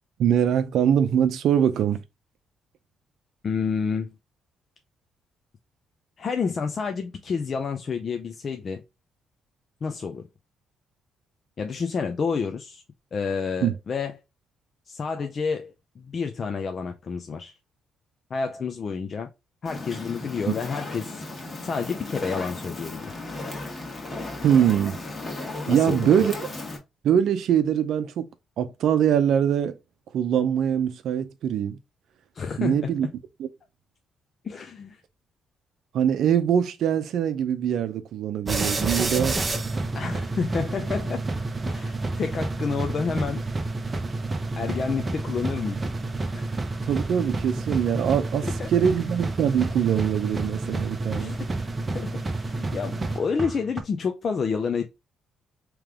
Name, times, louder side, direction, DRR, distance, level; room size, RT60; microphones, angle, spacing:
voice 1, 0.2-2.0 13.6-13.8 24.4-25.0 25.7-26.3 27.0-28.3 28.6-29.8 30.1-31.8 32.6-33.1 33.4-33.5 35.9-39.4 46.9-51.4, right 9 dB, 75° right, 0.6 m, -23 dB
voice 2, 3.4-4.1 6.2-8.8 9.8-10.2 11.6-12.8 13.1-14.1 14.9-17.5 18.3-19.3 19.6-21.2 21.6-23.1 25.7-26.1 32.3-32.9 34.4-35.0 39.9-41.2 41.7-43.4 44.6-45.9 46.3-46.5 48.4-48.7 51.2-54.9, left 5 dB, 45° left, 0.5 m, -29 dB
Fire, 19.6-26.8, left 2 dB, 30° left, 1.4 m, -35 dB
sound 1, 38.5-53.8, right 2 dB, 25° right, 0.7 m, -29 dB
3.3 x 3.1 x 3.6 m
cardioid pair, 90°, 0 cm